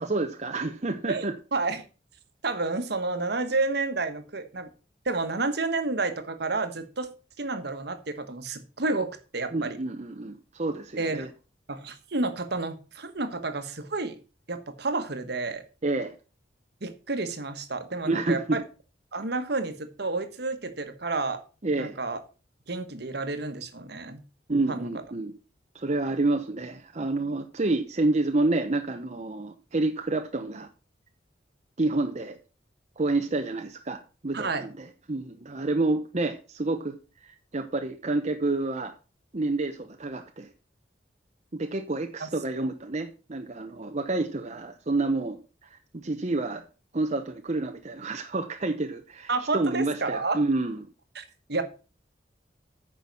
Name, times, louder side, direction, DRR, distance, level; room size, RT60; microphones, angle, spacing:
voice 1, 0.0-1.3 9.5-11.3 15.8-16.2 18.1-18.6 21.6-22.0 24.5-25.3 25.7-30.7 31.8-32.4 33.0-37.0 37.2-38.9 39.3-40.5 41.5-46.6 46.9-50.8, right 2 dB, 40° right, 5 dB, 0.9 m, -29 dB
voice 2, 1.1-1.8 2.4-4.7 5.0-7.1 7.4-9.8 11.0-11.3 11.7-14.1 14.5-15.6 16.8-18.6 19.1-21.4 21.8-22.2 22.7-24.2 24.7-24.9 34.3-34.7 42.2-42.3 42.6-42.7 49.3-50.4 51.1-51.2 51.5-51.6, right 3 dB, 65° right, 9 dB, 1.5 m, -30 dB
9.5 x 6.1 x 6.1 m, 0.34 s
head